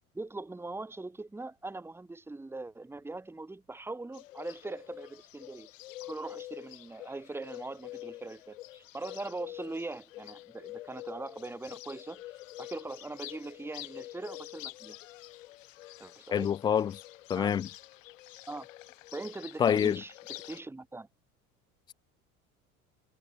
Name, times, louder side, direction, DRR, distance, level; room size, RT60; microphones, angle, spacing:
voice 1, 0.1-5.7 6.0-12.2 12.6-15.0 16.0-16.5 17.4-17.5 18.5-18.7 19.1-21.1, right 2 dB, 5° right, 1.2 m, -41 dB
Bird, 4.1-20.6, left 16 dB, 60° left, 1.1 m, -47 dB
voice 2, 16.3-16.9 17.3-17.7 19.6-20.0, left 8 dB, 10° left, 0.3 m, -26 dB
figure-of-eight pair, 70°, 43 cm